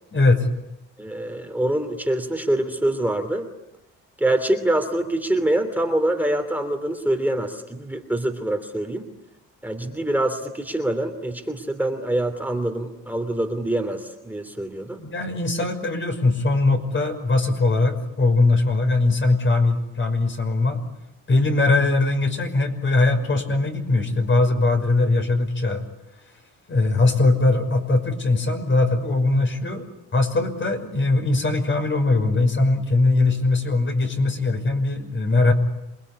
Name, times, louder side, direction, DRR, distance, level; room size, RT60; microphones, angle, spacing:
voice 1, 0.1-0.5 14.9-20.8 21.3-25.8 26.7-29.9 30.1-35.5, left 2 dB, 40° left, 5 dB, 5.7 m, -20 dB
voice 2, 1.0-3.5 4.2-9.0 9.6-15.0, right 1 dB, 5° right, 5 dB, 3.0 m, -25 dB
27.5 x 21.0 x 9.9 m, 0.89 s
cardioid pair, 90°, 30 cm